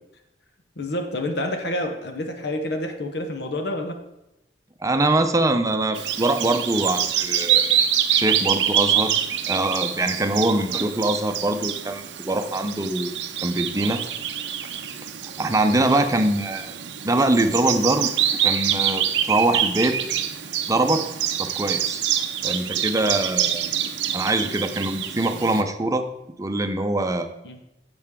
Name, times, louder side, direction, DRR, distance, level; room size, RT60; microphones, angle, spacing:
voice 1, 0.8-4.0 27.4-27.6, left 1 dB, 65° left, 4 dB, 1.0 m, -28 dB
voice 2, 4.8-7.8 8.1-9.1 9.5-13.1 13.4-14.0 15.4-16.7 17.0-18.1 18.4-20.0 20.7-21.0 21.4-22.0 22.4-23.7 24.1-26.1 26.4-27.3, right 2 dB, 20° right, 6 dB, 0.7 m, -23 dB
Bird vocalization bird call bird song, 5.9-25.6, right 9 dB, 75° right, 0.7 m, -26 dB
10.0 x 7.8 x 3.7 m, 0.88 s
head